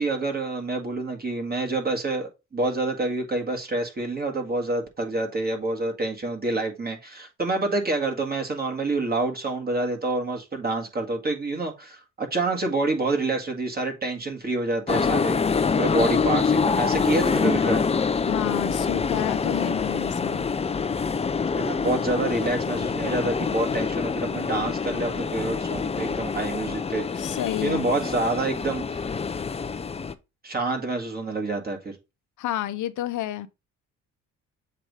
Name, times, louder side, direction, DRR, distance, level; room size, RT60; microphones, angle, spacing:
voice 1, 0.0-17.8 21.5-29.0 30.4-32.0, right 2 dB, 30° right, 1.7 m, -27 dB
sound 1, 14.9-30.1, left 5 dB, 20° left, 0.5 m, -26 dB
voice 2, 18.3-20.5 27.2-27.9 32.4-33.5, left 13 dB, 75° left, 0.7 m, -30 dB
7.5 x 2.6 x 4.7 m
cardioid pair, 90°, 30 cm